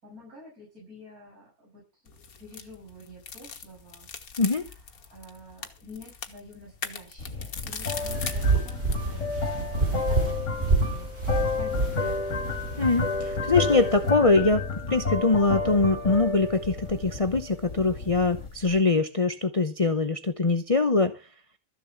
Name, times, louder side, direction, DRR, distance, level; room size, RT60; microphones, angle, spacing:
voice 1, 0.0-12.6, left 1 dB, 90° right, -3 dB, 7.1 m, -49 dB
sound 1, 2.1-9.0, left 6 dB, 80° left, 1.9 m, -40 dB
sound 2, 7.2-18.8, left 4 dB, 55° left, 2.5 m, -31 dB
sound 3, 7.7-14.1, right 3 dB, 45° right, 5.0 m, -29 dB
voice 2, 12.8-21.2, left 3 dB, 30° left, 9 dB, 0.8 m, -23 dB
14.0 x 7.1 x 7.2 m, 0.31 s
omnidirectional pair, 1.5 m